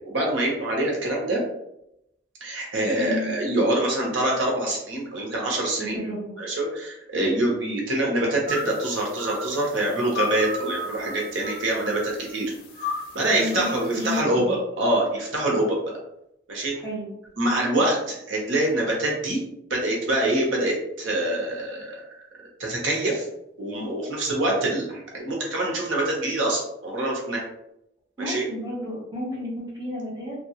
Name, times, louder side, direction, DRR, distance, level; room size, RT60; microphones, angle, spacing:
voice 1, 0.0-1.4 2.4-6.0 6.4-12.5 13.1-15.8 16.5-16.7 17.4-19.4 19.7-22.0 22.6-23.3 23.6-27.4 28.2-28.4, right 1 dB, 85° right, -1 dB, 0.8 m, -25 dB
voice 2, 2.9-3.3 5.8-6.3 13.2-14.6 16.7-17.1 28.2-30.5, left 1 dB, 20° right, -7 dB, 0.9 m, -32 dB
sound 1, 8.5-14.2, left 3 dB, 50° left, 0.5 m, -35 dB
2.6 x 2.2 x 2.9 m, 0.81 s
head